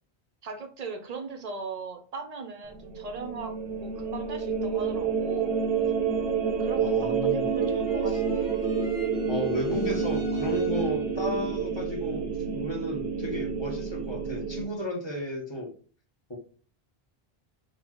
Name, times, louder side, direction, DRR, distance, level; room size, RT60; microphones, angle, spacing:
voice 1, 0.4-3.5 3.8-5.6 6.6-8.5, right 4 dB, 50° right, 5 dB, 0.5 m, -39 dB
sound 1, 2.7-14.6, right 6 dB, 80° right, 0.9 m, -29 dB
voice 2, 6.8-7.5 8.1-8.2 9.3-15.7 16.3-16.4, left 1 dB, 30° left, 0 dB, 0.7 m, -33 dB
sound 2, 7.3-11.2, left 1 dB, 65° left, 1.4 m, -48 dB
4.1 x 2.0 x 2.9 m, 0.41 s
omnidirectional pair, 1.1 m